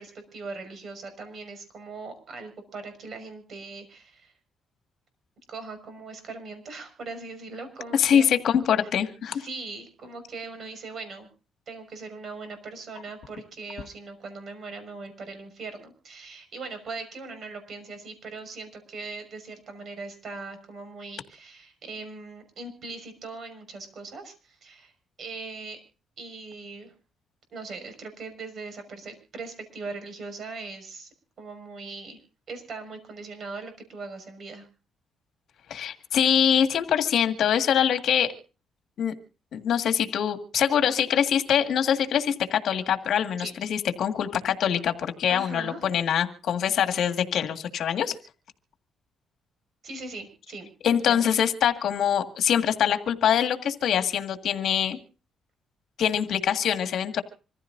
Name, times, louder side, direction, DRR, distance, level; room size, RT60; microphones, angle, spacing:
voice 1, 0.0-4.3 5.5-8.3 8.8-8.9 9.3-11.3 11.7-24.9 25.2-25.8 26.2-26.9 27.5-31.1 31.4-32.2 32.5-34.7 43.4-43.5 45.3-45.9 49.8-51.3, right 3 dB, 55° right, 8 dB, 5.7 m, -40 dB
voice 2, 7.9-9.5 35.7-38.3 39.0-39.1 39.5-48.2 50.8-55.0 56.0-57.2, left 9 dB, 70° left, 6 dB, 1.8 m, -24 dB
26.0 x 15.0 x 2.6 m, 0.36 s
cardioid pair, 90°, 0 cm